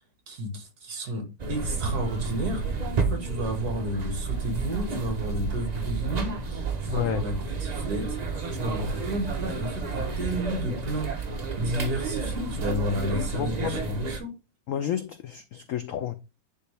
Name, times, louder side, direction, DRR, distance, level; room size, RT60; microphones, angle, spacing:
voice 1, 0.3-7.3 7.6-8.2 8.5-14.3, equal, 60° right, 2.0 m, -32 dB
sound 1, 1.4-14.2, right 4 dB, 45° right, 0.5 m, -31 dB
voice 2, 6.9-7.3 13.4-13.8 14.7-16.1, left 10 dB, 80° left, 0.7 m, -31 dB
9.9 x 3.4 x 3.3 m
omnidirectional pair, 2.0 m